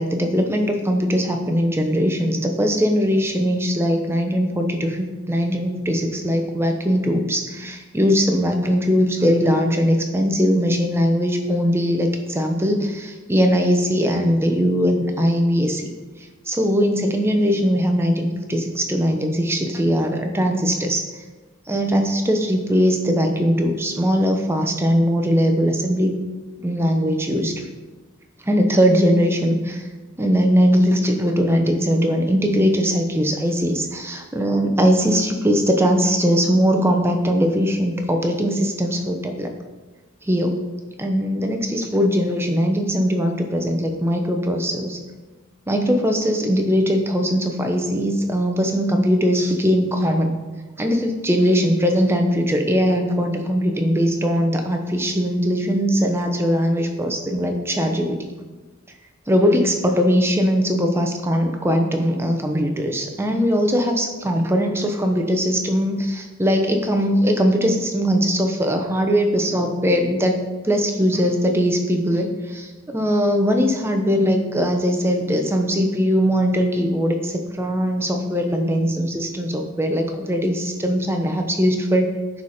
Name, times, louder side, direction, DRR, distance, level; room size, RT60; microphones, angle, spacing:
voice 1, 0.0-15.8 16.5-21.0 21.7-26.1 26.6-27.5 28.4-29.8 30.2-39.5 40.2-40.6 41.0-45.0 45.7-50.3 50.8-58.2 59.3-70.4 70.6-82.1, equal, 10° right, 4 dB, 0.7 m, -20 dB
10.5 x 4.3 x 4.9 m, 1.2 s
head